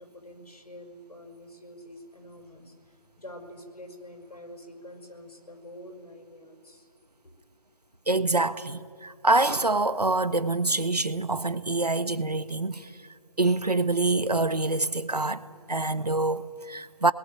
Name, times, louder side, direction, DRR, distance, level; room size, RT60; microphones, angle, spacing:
voice 1, 0.0-6.9 7.2-7.3, left 1 dB, 75° left, 5.6 m, -46 dB
voice 2, 8.1-12.9 13.4-17.1, right 2 dB, 85° right, 1.3 m, -26 dB
28.0 x 20.5 x 9.2 m
figure-of-eight pair, 150°, 20 cm